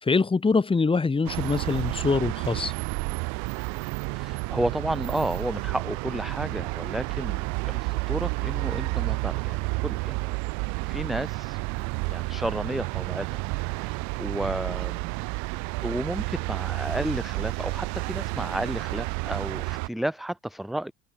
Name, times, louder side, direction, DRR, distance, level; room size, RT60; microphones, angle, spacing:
voice 1, 0.0-2.7, left 4 dB, 15° left, 1.2 m, -24 dB
sound 1, 1.3-19.9, right 29 dB, 70° right, 1.1 m, -30 dB
voice 2, 4.1-10.3 10.8-11.6 12.1-15.2 15.8-20.9, right 1 dB, ahead, 0.7 m, -32 dB
hypercardioid pair, 70°, 30 cm